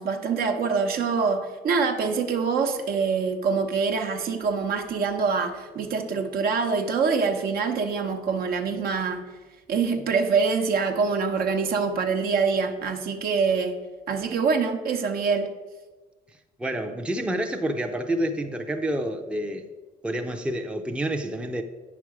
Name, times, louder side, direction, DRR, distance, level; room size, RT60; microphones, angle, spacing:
voice 1, 0.0-9.2 9.7-13.8 14.1-15.5, right 5 dB, 65° right, 5 dB, 1.0 m, -25 dB
voice 2, 16.6-19.7 20.0-21.6, right 1 dB, 5° right, 5 dB, 0.6 m, -28 dB
8.9 x 6.0 x 4.8 m, 1.3 s
cardioid pair, 110°, 17 cm